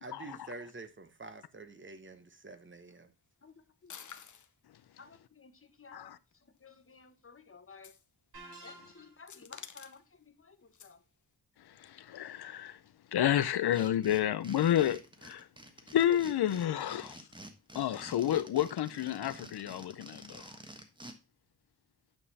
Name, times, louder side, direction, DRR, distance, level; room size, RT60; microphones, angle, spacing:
voice 1, 0.0-3.1, right 3 dB, 30° right, 1.0 m, -47 dB
voice 2, 3.4-4.1 5.0-7.9 8.6-11.0, left 5 dB, 35° left, 1.3 m, -56 dB
sound 1, 3.9-4.5 6.3-6.4 7.7-8.0 8.4-8.7 9.3-10.0 10.7-11.0, left 7 dB, 50° left, 0.8 m, -49 dB
sound 2, 8.3-9.4, right 2 dB, 80° right, 4.5 m, -51 dB
voice 3, 11.8-12.8 13.1-15.5 15.9-17.2 17.7-20.4, left 11 dB, 85° left, 0.6 m, -30 dB
sound 3, 13.5-21.1, right 1 dB, 10° right, 1.3 m, -50 dB
9.3 x 5.4 x 4.1 m
wide cardioid pair, 125°, 38 cm